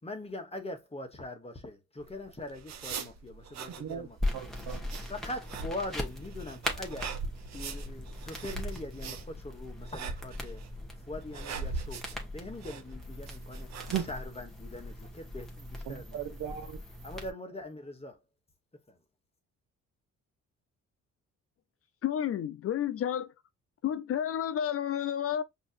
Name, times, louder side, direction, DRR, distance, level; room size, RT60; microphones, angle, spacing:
voice 1, 0.0-4.3 5.1-7.2 7.5-10.6 11.0-16.4 17.0-18.2 18.9-19.0, left 1 dB, 20° left, 1.3 m, -42 dB
sound 1, 2.0-14.1, right 6 dB, 60° right, 0.7 m, -40 dB
voice 2, 3.8-4.9 15.9-16.8, right 8 dB, 85° right, 0.9 m, -40 dB
sound 2, 4.2-17.3, left 1 dB, ahead, 1.3 m, -40 dB
voice 3, 22.0-23.3 23.8-25.4, left 10 dB, 50° left, 0.5 m, -31 dB
5.2 x 2.9 x 2.5 m
cardioid pair, 90°, 30 cm